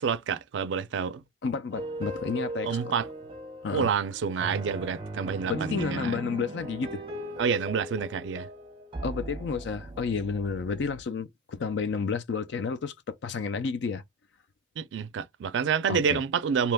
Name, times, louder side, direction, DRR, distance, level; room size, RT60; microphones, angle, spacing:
voice 1, 0.0-1.2 2.6-3.1 3.7-6.1 7.4-8.5 14.8-16.7, right 6 dB, 85° right, 0.4 m, -28 dB
voice 2, 1.4-2.9 3.6-3.9 5.5-7.0 9.0-14.0 15.9-16.2, left 5 dB, 70° left, 0.4 m, -31 dB
sound 1, 1.7-11.0, right 1 dB, 30° right, 0.6 m, -38 dB
2.8 x 2.2 x 3.4 m
head